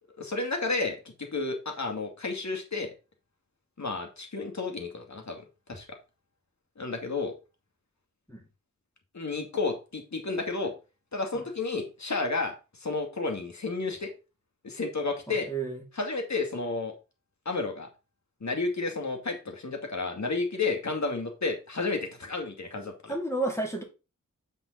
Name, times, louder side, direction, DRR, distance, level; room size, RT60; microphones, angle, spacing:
voice 1, 0.2-2.9 3.8-6.0 6.8-7.3 9.1-10.7 11.1-14.1 14.6-15.5 16.0-16.9 17.5-17.9 18.4-23.1, left 3 dB, 55° left, 2.4 m, -31 dB
voice 2, 15.3-15.8 23.1-23.8, right 2 dB, 10° left, 3.1 m, -31 dB
8.0 x 5.4 x 4.1 m
cardioid pair, 40°, 33 cm